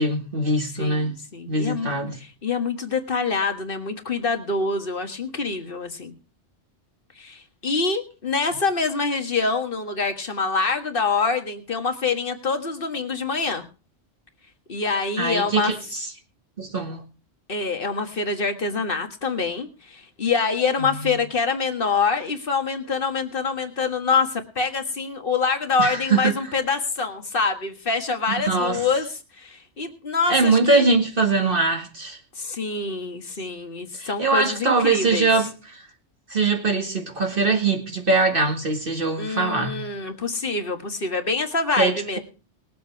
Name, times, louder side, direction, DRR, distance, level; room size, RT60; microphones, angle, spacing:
voice 1, 0.0-1.2 1.5-2.1 15.2-16.1 16.6-17.0 20.8-21.0 25.8-26.3 28.4-28.9 30.3-32.2 34.0-35.8 36.3-39.8 41.8-42.2, right 3 dB, 45° right, 2.0 m, -22 dB
voice 2, 0.8-6.2 7.2-13.7 14.7-15.7 17.5-30.9 32.4-35.3 39.2-42.2, left 4 dB, 45° left, 1.8 m, -25 dB
20.5 x 7.8 x 4.6 m
omnidirectional pair, 1.3 m